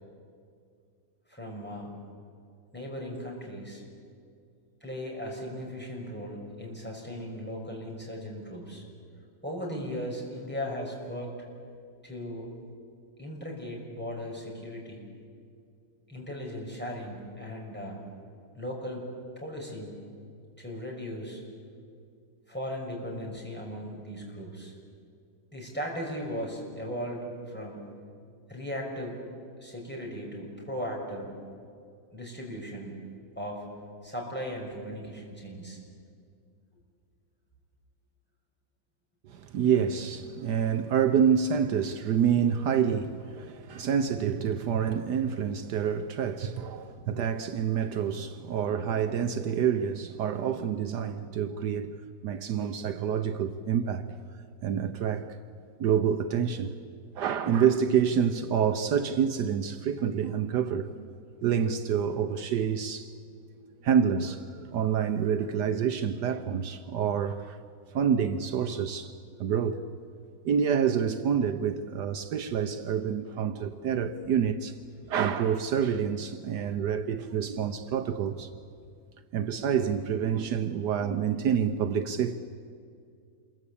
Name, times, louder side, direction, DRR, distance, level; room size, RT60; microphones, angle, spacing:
voice 1, 1.3-1.9 2.7-3.8 4.8-8.8 9.4-11.4 12.0-12.5 13.2-15.1 16.1-18.0 18.6-19.1 19.4-20.0 20.6-21.4 22.5-24.7 25.5-27.8 28.5-29.2 29.6-31.4 32.1-32.9 33.4-33.7 34.0-35.8 40.6-40.7, equal, 5° left, 6.1 m, -37 dB
voice 2, 39.3-52.0 52.2-54.1 54.6-55.4 55.8-56.7 57.2-61.1 61.4-63.1 63.8-67.6 67.9-69.1 69.4-69.8 70.4-74.8 75.1-78.5 79.3-82.4, right 8 dB, 75° right, 1.4 m, -27 dB
27.5 x 23.0 x 8.6 m
omnidirectional pair, 1.9 m